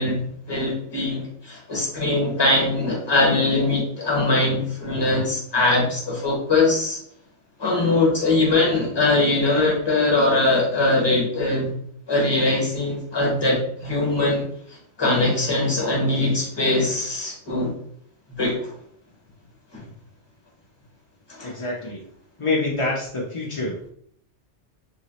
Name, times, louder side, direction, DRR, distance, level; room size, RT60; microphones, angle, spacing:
voice 1, 0.0-7.0 7.6-11.8 12.1-14.4 15.0-17.7 18.3-18.7 19.7-19.8 21.3-21.5, left 2 dB, 25° left, -2 dB, 0.9 m, -21 dB
voice 2, 21.4-22.0 22.4-23.9, left 2 dB, 45° left, -4 dB, 0.4 m, -26 dB
2.9 x 2.7 x 2.9 m, 0.65 s
omnidirectional pair, 1.2 m